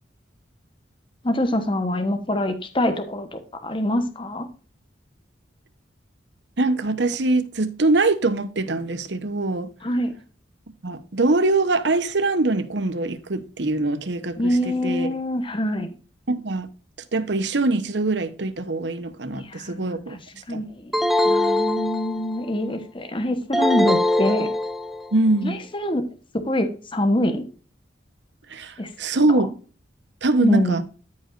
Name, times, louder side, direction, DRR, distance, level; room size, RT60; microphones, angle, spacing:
voice 1, 1.2-4.5 9.8-10.1 14.4-15.9 19.3-20.2 20.5-20.9 21.2-24.5 25.4-26.0 26.3-27.5 28.8-28.9 29.3-29.4 30.4-30.8, left 1 dB, 25° left, 1.0 m, -25 dB
voice 2, 6.6-9.7 10.8-15.1 16.3-16.7 17.1-20.2 20.5-20.6 25.1-25.6 28.5-29.5 30.2-30.8, right 2 dB, 65° right, 1.0 m, -23 dB
sound 1, 20.9-22.5 23.5-25.1, left 1 dB, ahead, 0.5 m, -22 dB
13.5 x 5.1 x 2.5 m
head